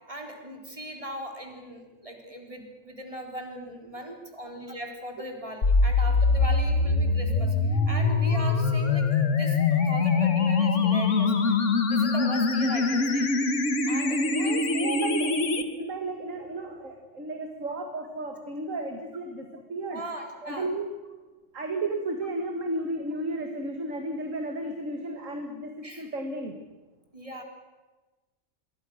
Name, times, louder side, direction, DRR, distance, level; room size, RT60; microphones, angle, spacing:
voice 1, 0.1-11.6 11.9-13.3 13.9-14.5 14.8-15.0 19.9-20.7 25.8-26.0 27.1-27.4, right 1 dB, 25° right, 2 dB, 4.2 m, -39 dB
sound 1, 5.6-15.6, left 4 dB, 70° left, 2.0 m, -23 dB
voice 2, 14.3-20.0 20.4-20.9 21.5-26.6, right 2 dB, 85° right, 4 dB, 2.3 m, -33 dB
26.0 x 23.0 x 6.5 m, 1.2 s
omnidirectional pair, 1.3 m